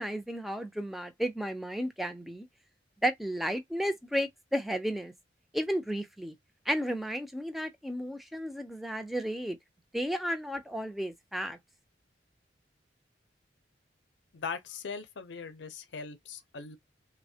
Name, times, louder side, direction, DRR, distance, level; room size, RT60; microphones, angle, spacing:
voice 1, 0.0-2.5 3.0-5.1 5.5-6.3 6.7-9.6 9.9-11.6, equal, ahead, 0.4 m, -33 dB
voice 2, 14.3-16.8, left 5 dB, 80° left, 0.5 m, -40 dB
3.1 x 2.1 x 2.7 m
head